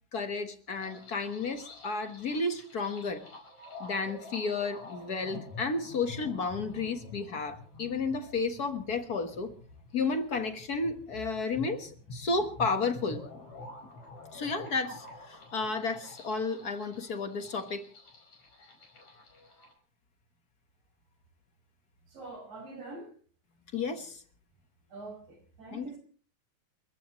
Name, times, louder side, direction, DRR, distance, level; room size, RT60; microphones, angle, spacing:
voice 1, 0.1-3.2 3.8-9.5 9.9-13.2 14.3-17.8 23.7-24.2 25.7-26.0, left 4 dB, 45° left, 1.3 m, -32 dB
sound 1, 0.7-19.7, left 2 dB, 65° left, 6.4 m, -48 dB
voice 2, 22.1-23.1 24.9-26.0, right 2 dB, 55° right, 6.7 m, -44 dB
29.5 x 15.0 x 3.1 m
omnidirectional pair, 3.4 m